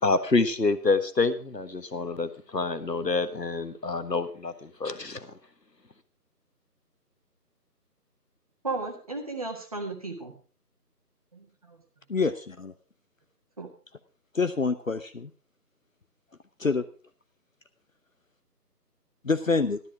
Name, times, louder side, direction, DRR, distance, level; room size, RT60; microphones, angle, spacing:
voice 1, 0.0-5.3, left 3 dB, 85° left, 10 dB, 1.7 m, -27 dB
voice 2, 8.6-10.3 11.3-11.8 13.6-13.7, right 3 dB, 20° right, 3 dB, 1.6 m, -35 dB
voice 3, 12.1-12.7 14.3-15.3 16.6-16.8 19.2-19.8, left 4 dB, 55° left, 10 dB, 0.8 m, -26 dB
13.0 x 12.5 x 4.7 m, 0.39 s
figure-of-eight pair, 160°, 49 cm